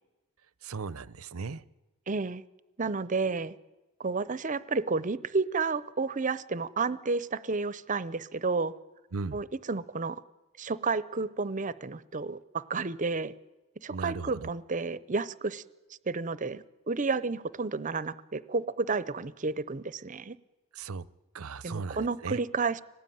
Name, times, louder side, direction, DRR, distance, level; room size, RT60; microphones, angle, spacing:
voice 1, 0.6-1.6 9.1-9.4 13.9-14.5 20.7-21.0 21.3-22.4, right 4 dB, 75° right, 0.7 m, -37 dB
voice 2, 2.1-2.4 2.8-3.5 4.0-8.7 9.3-10.2 10.6-13.3 13.8-15.6 16.1-20.4 21.6-22.8, right 4 dB, 35° right, 0.7 m, -31 dB
24.5 x 18.5 x 9.4 m
head